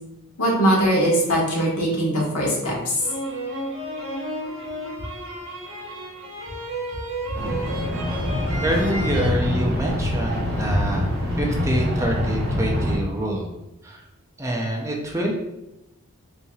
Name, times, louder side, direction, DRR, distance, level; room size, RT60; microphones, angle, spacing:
voice 1, 0.4-3.0 10.7-10.8, equal, 85° left, -4 dB, 1.5 m, -21 dB
sound 1, 3.0-9.3, right 1 dB, 75° right, 1.1 m, -32 dB
sound 2, 7.3-13.0, left 1 dB, 50° right, 1.1 m, -25 dB
voice 2, 8.6-13.5 13.8-14.0 14.4-15.3, right 1 dB, 15° right, 0 dB, 0.5 m, -26 dB
5.7 x 3.0 x 2.4 m, 0.91 s
head